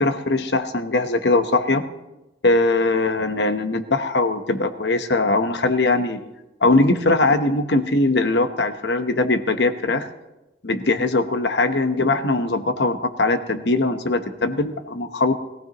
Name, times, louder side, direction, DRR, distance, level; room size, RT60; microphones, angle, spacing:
voice 1, 0.0-1.8 2.4-6.2 6.6-10.1 10.6-15.3, left 2 dB, 70° left, 8 dB, 1.0 m, -21 dB
21.0 x 15.0 x 3.0 m, 0.97 s
head